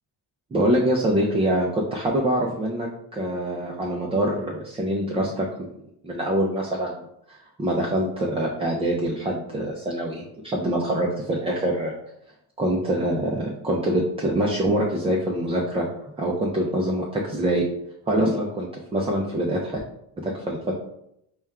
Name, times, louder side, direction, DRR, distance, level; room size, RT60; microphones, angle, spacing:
voice 1, 0.5-5.8 6.0-11.9 12.6-15.9 16.2-17.6 18.1-19.8 20.2-20.7, right 1 dB, 15° right, -2 dB, 0.3 m, -25 dB
4.2 x 2.3 x 3.5 m, 0.77 s
cardioid pair, 125°, 46 cm